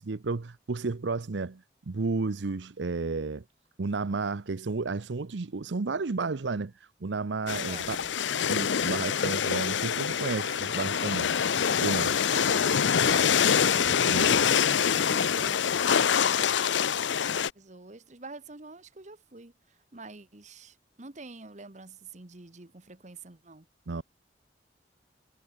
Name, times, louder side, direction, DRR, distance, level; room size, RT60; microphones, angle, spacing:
voice 1, 0.0-3.4 3.8-6.7 7.0-8.0 8.5-11.3 11.8-12.2 13.8-14.3 23.9-24.0, right 3 dB, 80° right, 0.7 m, -32 dB
sound 1, 7.5-17.5, left 7 dB, 90° left, 0.6 m, -25 dB
voice 2, 7.5-8.2 12.3-15.7 16.2-16.8 17.5-23.7, right 3 dB, 40° right, 1.4 m, -46 dB
head